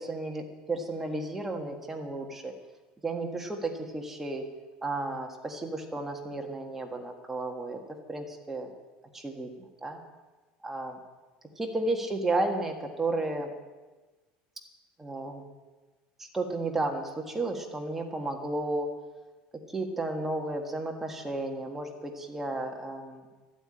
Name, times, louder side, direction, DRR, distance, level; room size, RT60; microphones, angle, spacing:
voice 1, 0.0-2.5 3.0-4.4 4.8-8.7 9.1-9.5 9.8-10.0 10.6-11.0 11.6-13.5 15.0-15.4 16.2-18.9 19.7-23.2, right 2 dB, 10° right, 2 dB, 1.5 m, -33 dB
13.5 x 9.0 x 8.8 m, 1.3 s
cardioid pair, 165°, 3 cm